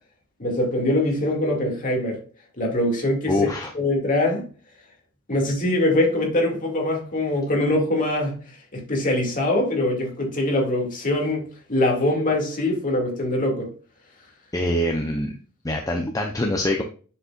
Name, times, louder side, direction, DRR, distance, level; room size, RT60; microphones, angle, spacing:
voice 1, 0.4-2.2 2.6-3.4 3.7-4.5 5.3-8.4 8.7-13.7, left 1 dB, 35° left, 2.4 m, -23 dB
voice 2, 3.3-3.7 14.5-15.4 15.6-16.8, left 1 dB, 15° left, 0.7 m, -24 dB
7.4 x 6.8 x 2.5 m
head